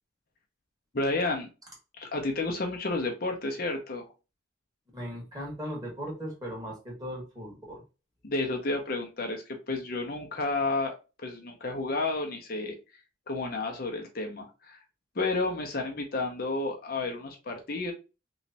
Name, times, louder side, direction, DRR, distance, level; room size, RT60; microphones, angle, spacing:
voice 1, 0.9-1.5 2.0-4.1 8.2-10.9 11.2-12.7 13.3-14.8 15.2-17.9, left 2 dB, 50° left, 2 dB, 0.6 m, -31 dB
voice 2, 4.9-7.8, equal, 20° right, -2 dB, 1.5 m, -38 dB
3.1 x 3.1 x 2.7 m, 0.30 s
head